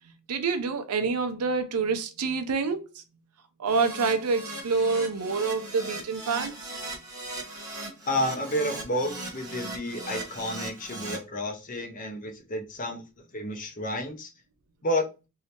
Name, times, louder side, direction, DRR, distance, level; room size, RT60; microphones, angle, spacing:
voice 1, 0.3-3.0 3.6-6.5, right 4 dB, 90° right, 0.6 m, -27 dB
Keyboard (musical), 3.7-11.2, right 2 dB, 15° right, 1.0 m, -38 dB
voice 2, 8.1-13.0 13.3-14.3 14.8-15.1, left 1 dB, 35° left, 0.7 m, -30 dB
3.2 x 2.8 x 2.8 m
head